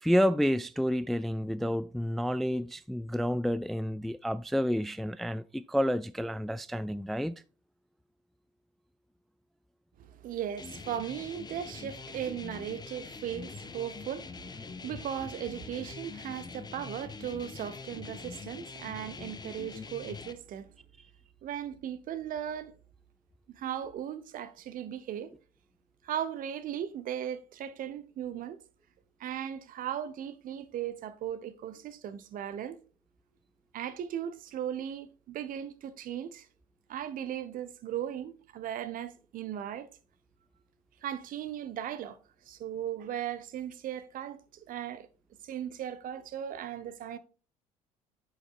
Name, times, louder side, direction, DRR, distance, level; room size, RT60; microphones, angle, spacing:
voice 1, 0.0-7.3, equal, ahead, 0.3 m, -29 dB
voice 2, 10.0-20.7 21.4-22.7 23.5-25.3 26.0-28.6 29.2-32.8 33.7-36.5 36.9-39.9 41.0-42.2 42.5-45.1 45.4-47.2, right 10 dB, 50° right, 0.9 m, -37 dB
sound 1, 10.6-20.3, left 5 dB, 25° left, 0.8 m, -44 dB
8.6 x 6.3 x 2.4 m
figure-of-eight pair, 55°, 18 cm